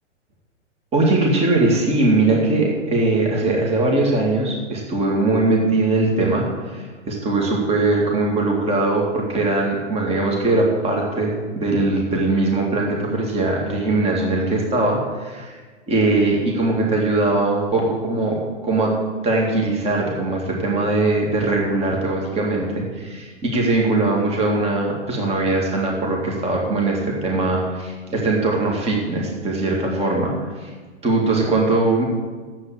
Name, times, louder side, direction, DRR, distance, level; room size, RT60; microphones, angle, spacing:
voice 1, 0.9-15.6 15.9-18.4 18.6-18.9 19.2-22.7 22.9-30.3 30.6-30.7 31.0-32.0, right 2 dB, 15° right, -1 dB, 2.2 m, -20 dB
9.6 x 7.6 x 8.5 m, 1.4 s
hypercardioid pair, 125°, 36 cm